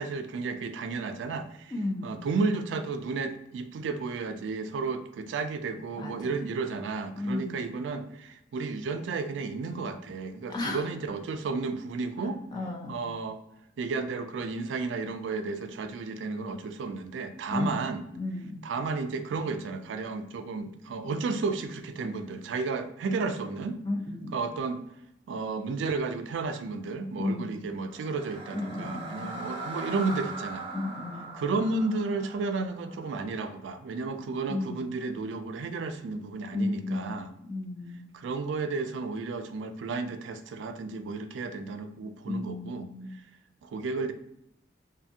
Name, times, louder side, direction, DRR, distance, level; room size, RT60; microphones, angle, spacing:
voice 1, 0.0-1.7 2.0-12.4 12.9-13.4 13.8-18.0 18.6-23.8 24.3-24.8 25.3-30.7 31.3-37.3 38.1-42.9 43.6-44.1, right 4 dB, 85° right, 8 dB, 0.3 m, -32 dB
voice 2, 1.7-2.3 6.0-6.4 7.1-7.6 10.5-10.8 12.2-13.0 17.5-17.9 18.2-18.6 23.8-24.4 27.2-27.6 28.5-29.4 30.7-31.3 34.5-34.9 36.5-38.1 42.3-43.1, left 2 dB, 25° left, 0 dB, 0.4 m, -34 dB
sound 1, 27.9-34.0, right 2 dB, 30° right, 0.5 m, -41 dB
2.5 x 2.4 x 2.6 m, 0.80 s
head